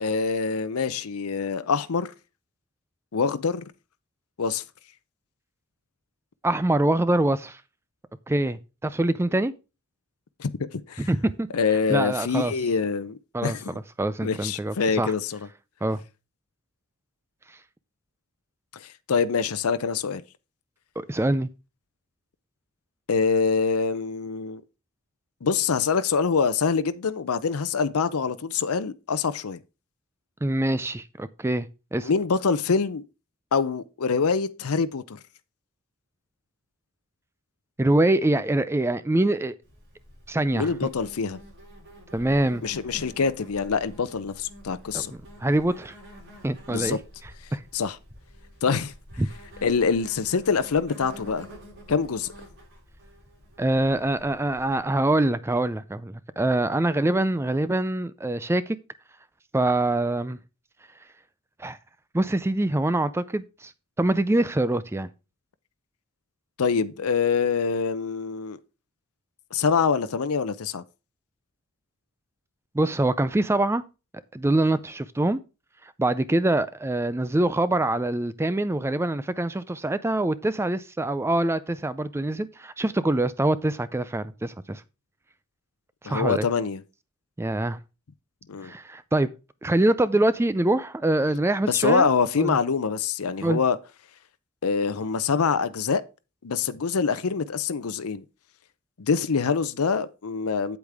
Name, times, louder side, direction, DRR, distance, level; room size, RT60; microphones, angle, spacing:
voice 1, 0.0-2.1 3.1-3.6 4.4-4.6 10.4-11.1 11.5-13.8 14.2-15.4 18.7-20.2 23.1-24.6 25.4-29.6 32.0-33.0 33.5-35.2 40.5-41.4 42.6-45.1 46.7-47.0 47.7-48.0 48.6-48.9 49.6-51.5 51.9-52.3 66.6-68.6 69.5-70.8 86.1-86.8 88.5-88.7 91.6-93.8 94.6-96.0 96.4-98.2 99.0-100.8, left 5 dB, 75° left, 0.6 m, -25 dB
voice 2, 6.4-7.6 8.3-9.5 11.0-11.5 11.9-12.5 13.3-13.6 14.0-15.1 15.8-16.0 21.0-21.5 30.4-32.1 37.8-39.6 40.3-40.7 42.1-42.6 44.9-45.0 45.4-45.9 46.4-47.0 47.5-47.6 49.2-49.3 53.6-58.8 59.5-60.4 61.6-61.8 62.1-63.7 64.0-65.1 72.7-73.8 74.3-75.4 75.8-84.8 86.0-86.5 87.4-87.8 88.6-89.3 89.6-92.1 92.4-92.6 93.4-93.6, right 1 dB, 10° right, 0.4 m, -24 dB
Insect, 39.6-54.8, equal, 55° right, 5.2 m, -48 dB
8.4 x 8.1 x 3.4 m
head